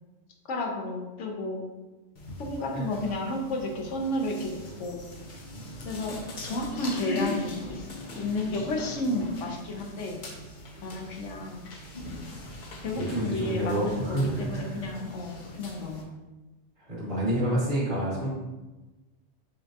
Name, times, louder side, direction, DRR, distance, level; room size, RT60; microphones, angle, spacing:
voice 1, 0.5-1.7 2.4-5.0 5.8-7.8 8.1-10.2 10.8-11.7 12.8-16.1, left 2 dB, 80° left, 1 dB, 1.0 m, -32 dB
sound 1, 2.2-16.0, left 1 dB, 50° left, 0.7 m, -40 dB
voice 2, 12.9-14.8 16.9-18.3, right 1 dB, 40° right, -9 dB, 1.6 m, -28 dB
6.3 x 2.3 x 2.7 m, 1.1 s
omnidirectional pair, 1.2 m